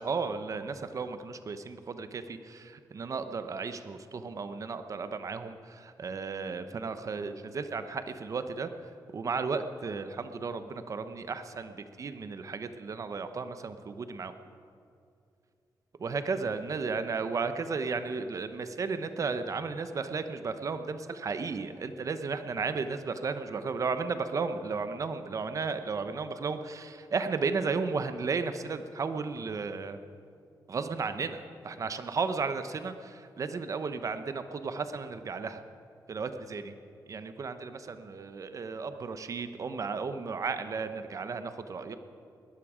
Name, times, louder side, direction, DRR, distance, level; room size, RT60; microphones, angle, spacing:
voice 1, 0.0-8.7 9.1-14.3 16.0-30.0 30.7-32.9 33.4-35.6 36.1-36.7 37.1-41.9, right 4 dB, 45° right, 10 dB, 0.8 m, -34 dB
20.0 x 13.5 x 5.0 m, 2.5 s
wide cardioid pair, 120°, 8 cm